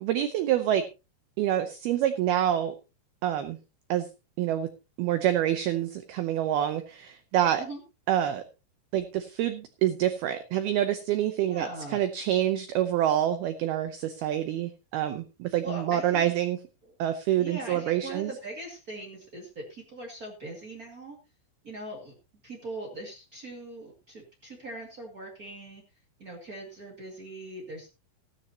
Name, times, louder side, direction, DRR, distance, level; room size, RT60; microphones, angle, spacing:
voice 1, 0.0-0.9 1.4-2.7 3.2-3.6 3.9-4.1 4.4-4.7 5.0-7.6 8.1-8.4 8.9-11.7 11.9-16.6 17.0-18.3, right 11 dB, 90° right, 9 dB, 2.2 m, -27 dB
voice 2, 11.4-12.0 15.6-16.2 17.4-21.2 21.6-22.1 22.4-25.8 26.2-27.9, right 2 dB, 55° right, -1 dB, 1.0 m, -40 dB
16.0 x 12.5 x 2.9 m, 0.29 s
omnidirectional pair, 5.6 m